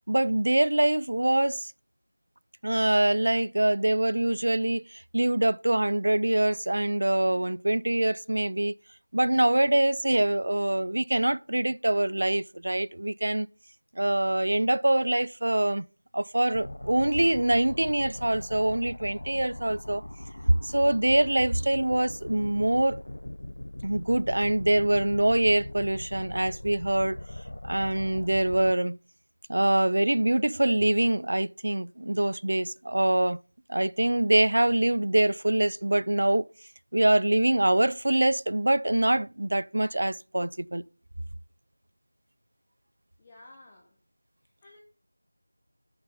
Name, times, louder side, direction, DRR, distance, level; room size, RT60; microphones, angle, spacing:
voice 1, 0.1-1.7 2.6-8.7 9.1-13.5 14.0-15.8 16.1-20.0 20.6-23.0 23.8-27.2 27.6-29.0 29.5-33.4 33.7-36.5 36.9-40.8, right 1 dB, 60° right, 0.3 m, -24 dB
sound 1, 16.5-28.7, left 1 dB, 70° left, 0.4 m, -41 dB
voice 2, 43.2-44.0 44.6-44.8, left 2 dB, 10° left, 0.9 m, -52 dB
9.0 x 6.8 x 5.4 m
figure-of-eight pair, 175°, 0 cm